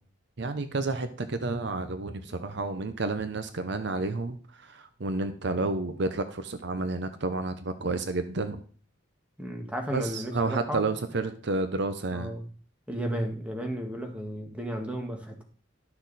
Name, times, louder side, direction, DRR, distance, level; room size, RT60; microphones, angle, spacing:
voice 1, 0.4-8.6 9.9-12.3, right 3 dB, 65° right, 10 dB, 0.8 m, -30 dB
voice 2, 9.4-10.8 12.1-12.4 12.9-15.4, equal, 5° right, 2 dB, 1.6 m, -34 dB
12.0 x 6.3 x 4.1 m, 0.43 s
head